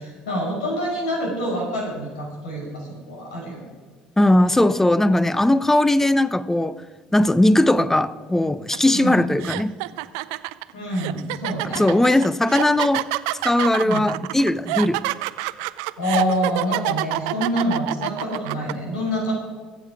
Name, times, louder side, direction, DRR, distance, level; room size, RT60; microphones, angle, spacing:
voice 1, 0.0-3.7 8.9-9.3 10.7-12.2 13.8-14.0 16.0-19.3, equal, 85° left, 5.3 m, -26 dB
voice 2, 4.2-6.7 7.1-9.7 11.7-13.0 13.4-15.0, left 1 dB, 10° left, 0.7 m, -18 dB
sound 1, 8.7-8.9 9.4-18.7, right 20 dB, 75° right, 0.5 m, -27 dB
22.5 x 7.5 x 4.9 m
hypercardioid pair, 60°, 4 cm